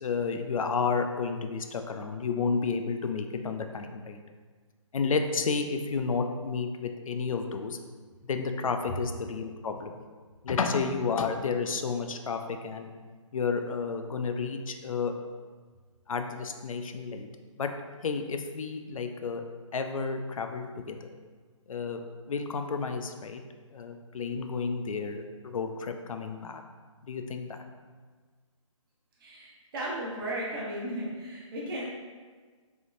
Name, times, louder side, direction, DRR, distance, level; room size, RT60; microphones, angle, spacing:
voice 1, 0.0-4.2 4.9-7.8 8.2-9.9 10.4-12.9 13.3-15.1 16.1-17.3 17.6-17.7 18.0-19.4 19.7-21.1 21.7-22.0 22.3-23.4 23.7-26.6 27.1-27.6, left 5 dB, 80° left, 6 dB, 0.4 m, -31 dB
voice 2, 29.2-31.9, right 1 dB, 40° right, -5 dB, 1.0 m, -35 dB
3.7 x 3.5 x 2.5 m, 1.5 s
hypercardioid pair, 150°, 17 cm